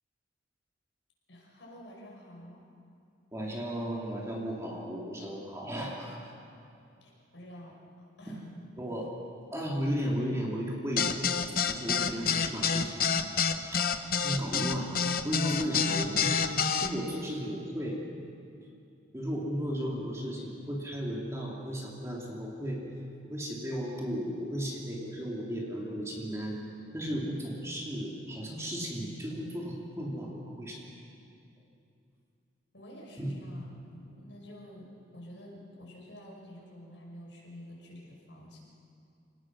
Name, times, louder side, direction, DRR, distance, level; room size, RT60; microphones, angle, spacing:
voice 1, 1.3-2.6 7.0-8.5 32.7-38.6, equal, 75° left, -2 dB, 5.9 m, -49 dB
voice 2, 3.3-6.3 8.3-8.4 8.7-9.1 9.5-11.3 11.7-13.2 13.7-13.8 14.1-18.0 19.1-22.8 23.2-26.6 26.9-30.8 33.2-33.3, equal, 15° right, -3 dB, 3.0 m, -35 dB
sound 1, 11.0-16.9, left 6 dB, 50° left, 0.9 m, -27 dB
26.5 x 19.0 x 6.2 m, 2.6 s
head